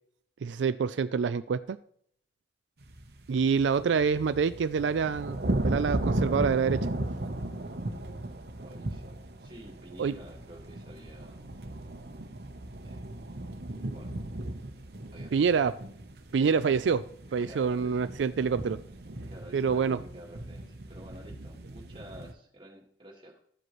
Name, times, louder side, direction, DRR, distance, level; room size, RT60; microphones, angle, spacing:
voice 1, 0.4-1.8 3.3-6.9 10.0-10.1 15.3-15.7 16.3-17.0 17.3-18.8 19.5-20.0, right 6 dB, 85° right, 12 dB, 0.4 m, -26 dB
sound 1, 2.8-22.3, right 1 dB, 60° right, 0.9 m, -36 dB
voice 2, 8.6-11.4 12.8-13.4 13.9-14.2 15.1-15.8 16.3-16.5 17.4-18.1 19.3-23.4, right 1 dB, 25° right, 0 dB, 1.9 m, -50 dB
12.5 x 7.6 x 3.1 m, 0.65 s
head